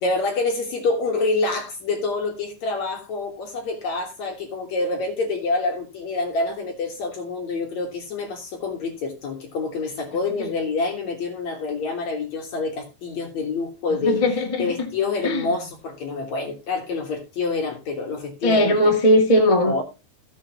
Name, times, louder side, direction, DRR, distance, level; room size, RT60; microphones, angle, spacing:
voice 1, 0.0-14.3 14.6-18.9 19.6-19.8, left 3 dB, 55° left, 2.3 m, -27 dB
voice 2, 14.0-14.6 15.2-15.4 18.4-19.8, left 1 dB, 20° left, 0.9 m, -18 dB
15.0 x 7.1 x 2.9 m
omnidirectional pair, 4.9 m